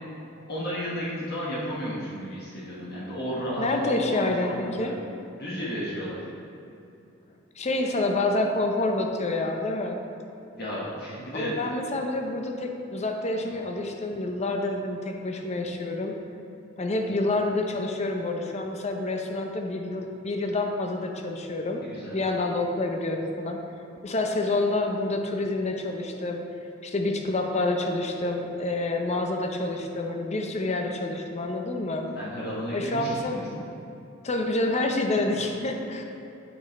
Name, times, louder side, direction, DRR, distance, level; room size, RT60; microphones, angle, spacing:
voice 1, 0.5-5.0 5.4-6.2 10.5-11.6 21.8-22.1 32.1-33.5 35.2-35.3, equal, 55° left, -7 dB, 1.4 m, -33 dB
voice 2, 3.6-4.9 7.6-10.0 11.3-16.2 16.8-21.8 22.1-23.6 24.0-26.4 26.8-32.1 32.7-33.4 34.2-36.0, left 2 dB, 35° left, 3 dB, 0.6 m, -28 dB
8.7 x 5.2 x 4.2 m, 2.8 s
head